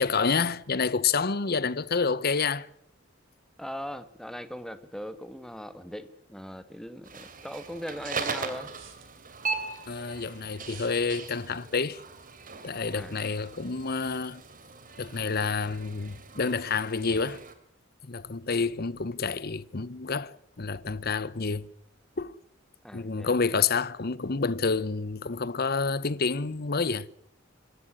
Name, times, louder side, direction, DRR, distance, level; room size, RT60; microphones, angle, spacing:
voice 1, 0.0-2.7 9.9-12.0 12.6-14.4 15.0-17.4 18.0-21.7 22.2-22.4 22.9-27.1, left 4 dB, 50° left, 0.9 m, -28 dB
voice 2, 3.6-8.7 12.9-13.2 22.8-23.3, equal, 5° left, 1.5 m, -39 dB
sound 1, 6.0-6.1 8.1-9.1 10.6-11.0, right 8 dB, 70° right, 4.4 m, -51 dB
sound 2, 7.0-17.5, right 4 dB, 45° right, 3.1 m, -39 dB
25.5 x 14.0 x 9.9 m
head